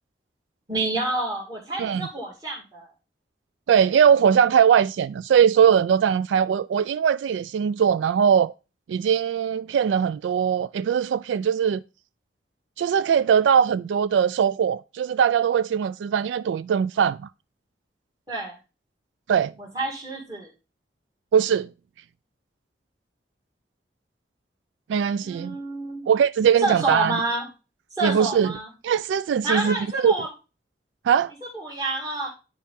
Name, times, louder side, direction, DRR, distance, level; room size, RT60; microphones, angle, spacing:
voice 1, 0.7-2.9 18.3-18.6 19.6-20.5 25.2-26.0 26.6-27.5 28.0-28.7 29.4-30.3 31.5-32.3, right 2 dB, 20° right, 1.9 m, -28 dB
voice 2, 3.7-8.5 8.9-11.8 12.8-17.2 19.3-19.5 21.3-21.7 24.9-25.6 26.1-27.2 28.0-28.5 28.8-29.8 30.0-30.1 31.0-31.3, right 8 dB, 90° right, 0.3 m, -20 dB
10.0 x 4.3 x 3.5 m
head